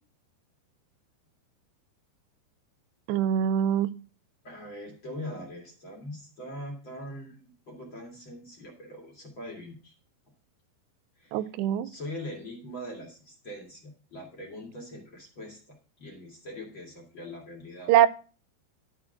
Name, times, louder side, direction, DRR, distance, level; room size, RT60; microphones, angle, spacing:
voice 1, 3.1-3.9 11.3-11.9 17.9-18.1, right 10 dB, 85° right, 16 dB, 2.8 m, -23 dB
voice 2, 4.4-9.9 11.2-11.4 11.8-17.9, left 1 dB, 40° left, 2 dB, 2.1 m, -42 dB
12.5 x 5.0 x 6.4 m, 0.37 s
omnidirectional pair, 4.9 m